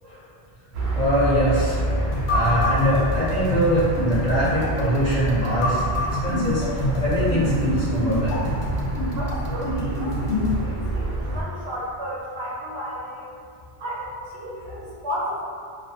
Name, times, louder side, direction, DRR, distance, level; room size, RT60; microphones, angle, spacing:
sound 1, 0.7-11.4, right 1 dB, 60° right, 0.6 m, -28 dB
voice 1, 0.9-2.0 2.3-5.8 6.2-8.6, equal, 45° left, -10 dB, 0.8 m, -23 dB
sound 2, 2.1-10.6, left 1 dB, 80° left, 0.8 m, -27 dB
voice 2, 9.1-13.2 13.8-15.4, equal, 85° right, -5 dB, 0.9 m, -33 dB
2.3 x 2.3 x 2.6 m, 2.2 s
omnidirectional pair, 1.0 m